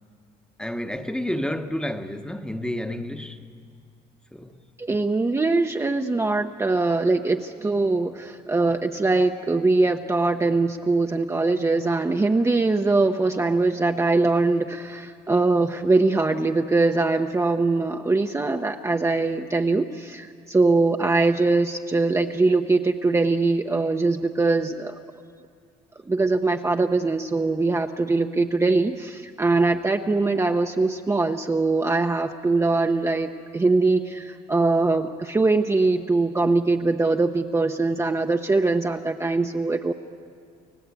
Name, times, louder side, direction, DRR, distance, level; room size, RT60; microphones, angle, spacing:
voice 1, 0.6-3.5 4.3-4.6, left 1 dB, 5° left, 1.1 m, -30 dB
voice 2, 4.8-25.0 26.1-39.9, right 3 dB, 15° right, 0.9 m, -22 dB
30.0 x 16.0 x 8.3 m
cardioid pair, 110°, 17 cm